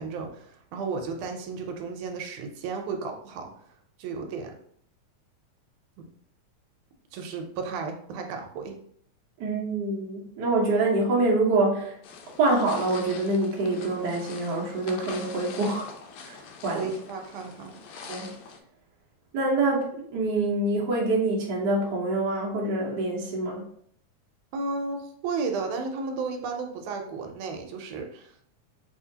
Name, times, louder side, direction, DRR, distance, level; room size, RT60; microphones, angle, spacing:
voice 1, 0.0-3.5 4.0-4.5 7.1-8.8 16.7-17.8 24.5-28.4, right 4 dB, 80° right, 3 dB, 2.0 m, -33 dB
voice 2, 9.4-11.9 12.4-15.9 16.2-16.9 18.1-18.3 19.3-23.6, right 2 dB, 60° right, -4 dB, 1.1 m, -26 dB
sound 1, 12.0-18.6, left 5 dB, 85° left, 2.0 m, -44 dB
6.1 x 2.8 x 2.8 m, 0.64 s
omnidirectional pair, 3.5 m